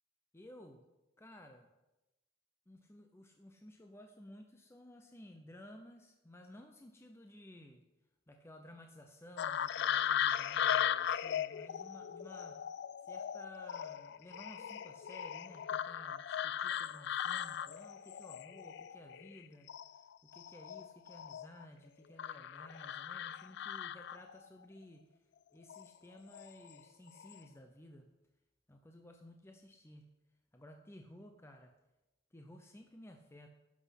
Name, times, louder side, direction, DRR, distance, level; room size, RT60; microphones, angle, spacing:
voice 1, 0.3-0.8 1.2-1.7 2.7-7.8 8.3-12.6 13.0-19.7 20.2-25.1 25.5-28.1 28.7-30.1 30.5-31.7 32.3-33.5, left 1 dB, 15° left, 4 dB, 0.7 m, -55 dB
sound 1, 9.4-19.4 19.7-21.7 22.2-24.5 25.6-25.9 26.3-26.8 27.1-27.4, left 9 dB, 60° left, 0.3 m, -38 dB
11.0 x 6.1 x 5.8 m, 0.98 s
head